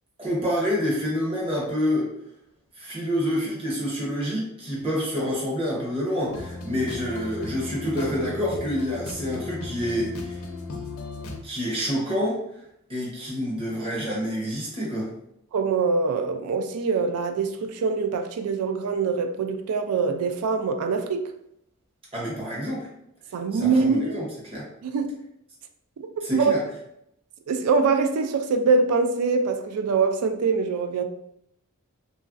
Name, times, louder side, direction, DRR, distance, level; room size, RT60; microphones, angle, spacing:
voice 1, 0.2-2.1 2.8-10.4 11.4-12.4 12.9-15.1 22.1-22.9 23.6-24.6 26.2-26.6, equal, 25° right, 0.8 m, -27 dB
sound 1, 6.3-11.4, left 3 dB, 70° left, 0.5 m, -36 dB
voice 2, 15.5-21.3 23.3-24.2 24.8-25.1 26.3-26.6 27.5-31.0, right 4 dB, 85° right, 0.3 m, -23 dB
3.0 x 2.5 x 2.5 m
head